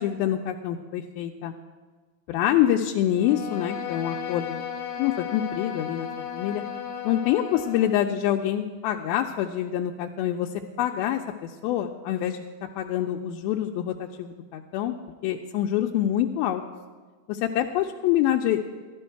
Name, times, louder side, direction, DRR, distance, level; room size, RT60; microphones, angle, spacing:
voice 1, 0.0-1.5 2.3-4.6 5.0-6.6 7.0-10.5 10.8-12.4 12.8-15.0 15.2-16.6 17.3-18.6, left 11 dB, 90° left, 2 dB, 2.4 m, -26 dB
Bowed string instrument, 3.1-8.1, left 8 dB, 60° left, 1.6 m, -35 dB
14.5 x 11.5 x 4.6 m, 1.4 s
omnidirectional pair, 4.2 m